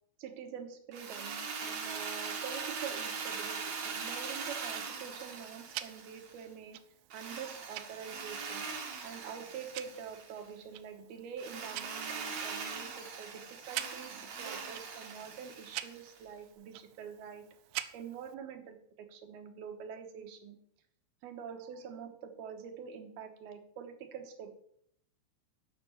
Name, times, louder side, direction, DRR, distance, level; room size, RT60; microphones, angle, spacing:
voice 1, 0.2-6.8 7.1-8.7 9.0-17.4 17.9-20.6 21.2-24.5, right 7 dB, 70° right, 6 dB, 2.5 m, -46 dB
Drill, 0.9-6.5 7.1-10.4 11.4-16.2, right 5 dB, 55° right, 2.0 m, -41 dB
Tick-tock, 4.3-18.3, right 15 dB, 85° right, 3.2 m, -48 dB
11.0 x 7.2 x 8.4 m, 0.69 s
omnidirectional pair, 5.4 m